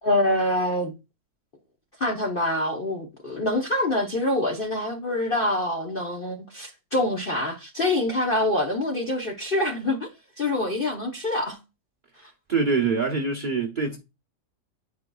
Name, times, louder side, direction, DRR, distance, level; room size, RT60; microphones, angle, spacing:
voice 1, 0.0-0.9 2.0-10.1 10.4-11.6, left 1 dB, 45° left, 0.8 m, -25 dB
voice 2, 12.5-14.0, right 4 dB, 35° right, 0.9 m, -24 dB
9.1 x 4.7 x 2.3 m
omnidirectional pair, 1.9 m